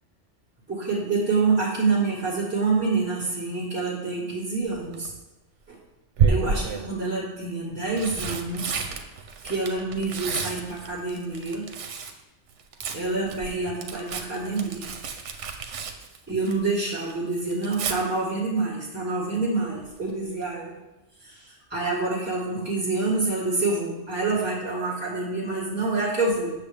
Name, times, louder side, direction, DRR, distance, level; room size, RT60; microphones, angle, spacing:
voice 1, 0.7-5.1 5.7-5.8 6.3-9.0 9.4-11.7 12.9-14.9 16.3-20.8 21.2-26.5, right 3 dB, 10° right, -10 dB, 1.7 m, -27 dB
Tearing, 4.7-5.1 6.2-6.9 7.7-12.2 12.5-16.8 17.1-18.0 19.8-20.1 20.4-20.5, right 6 dB, 80° right, 1.0 m, -30 dB
8.2 x 6.5 x 3.4 m, 1.0 s
omnidirectional pair, 1.2 m